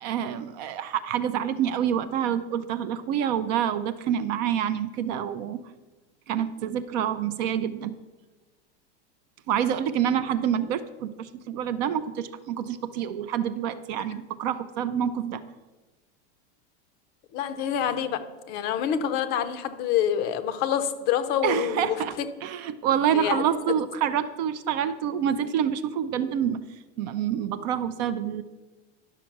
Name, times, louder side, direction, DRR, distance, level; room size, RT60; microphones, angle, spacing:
voice 1, 0.0-5.6 6.3-7.9 9.5-15.4 21.4-22.1 22.4-26.6 27.0-28.4, right 9 dB, 40° right, 13 dB, 0.4 m, -27 dB
voice 2, 17.3-22.3 23.1-23.4, left 9 dB, 30° left, 11 dB, 0.5 m, -27 dB
11.0 x 6.1 x 5.8 m, 1.2 s
supercardioid pair, 160°, 34 cm